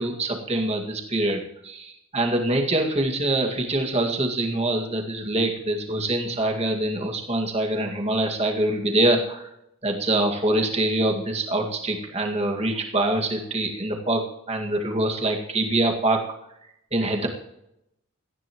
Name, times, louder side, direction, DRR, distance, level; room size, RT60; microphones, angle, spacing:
voice 1, 0.0-9.5 9.8-14.2 14.5-16.2 16.9-17.3, right 1 dB, 30° right, 1 dB, 2.1 m, -24 dB
17.5 x 14.5 x 3.1 m, 0.82 s
head